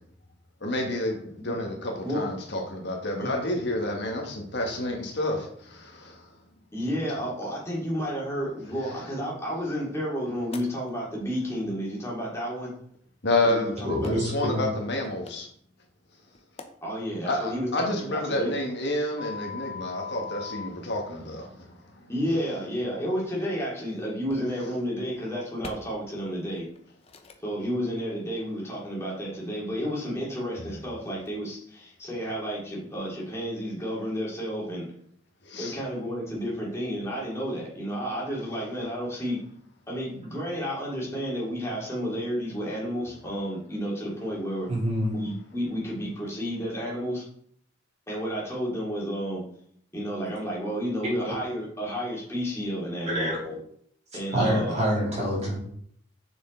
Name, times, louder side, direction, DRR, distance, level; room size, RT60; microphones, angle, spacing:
voice 1, 0.6-6.2 8.8-9.0 13.2-15.5 17.2-21.8 30.5-30.8 35.4-35.8, left 1 dB, 60° left, 0 dB, 1.7 m, -29 dB
voice 2, 6.7-12.7 13.4-14.1 16.8-18.5 22.1-26.7 27.4-34.9 35.6-39.4 39.9-44.7 45.1-47.2 48.1-49.4 49.9-53.3 54.1-54.8, equal, 15° left, -5 dB, 2.7 m, -31 dB
sound 1, 10.5-10.6 13.0-13.1 14.0-14.1 14.9-15.3 16.3-16.6 19.2-20.7 23.1-23.2 24.3-24.5 25.6-25.7 26.5-26.8 27.1-27.3, left 5 dB, 30° left, 0.7 m, -39 dB
voice 3, 13.8-14.7 44.7-45.1 51.2-51.3 53.1-53.5 54.3-55.6, equal, 35° right, -5 dB, 3.2 m, -26 dB
6.5 x 6.3 x 3.9 m, 0.65 s
head